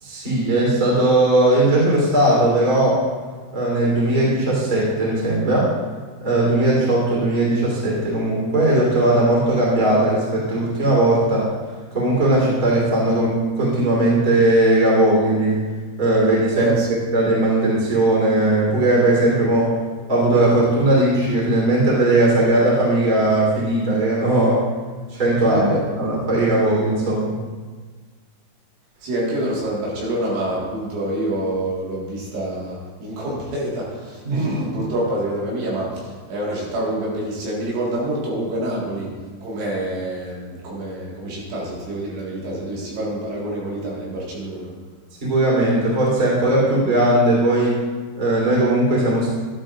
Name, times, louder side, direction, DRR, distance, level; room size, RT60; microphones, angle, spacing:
voice 1, 0.0-3.0 3.5-5.7 6.2-11.5 11.9-15.6 16.0-16.7 17.1-19.7 20.1-24.6 25.1-25.7 26.0-27.3 34.2-34.4 45.2-47.8 48.2-49.3, right 1 dB, 20° right, -5 dB, 3.3 m, -18 dB
voice 2, 16.5-16.9 25.5-25.8 29.0-44.7, right 1 dB, 70° right, -5 dB, 4.1 m, -26 dB
13.0 x 12.0 x 2.5 m, 1.4 s
omnidirectional pair, 5.8 m